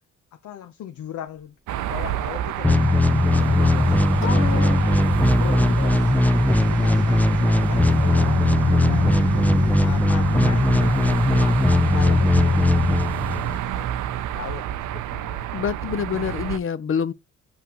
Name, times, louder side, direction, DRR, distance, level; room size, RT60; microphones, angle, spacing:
voice 1, 0.4-1.5 1.9-2.9 3.4-9.3 9.8-14.0 14.3-14.7 15.1-15.6, left 10 dB, 70° left, 0.9 m, -39 dB
sound 1, 1.3-1.5 1.7-1.8 2.3-2.4 2.8-2.9 3.3-3.4 3.6-3.9 4.6-4.7 5.2-5.3 5.7-10.8, right 3 dB, 15° right, 0.9 m, -42 dB
sound 2, 1.7-16.6, right 11 dB, 75° right, 0.6 m, -28 dB
sound 3, 2.6-13.6, left 2 dB, 5° left, 0.5 m, -19 dB
voice 2, 4.2-4.8 15.5-17.1, left 8 dB, 45° left, 0.7 m, -26 dB
7.0 x 5.7 x 3.0 m
cardioid pair, 90°, 30 cm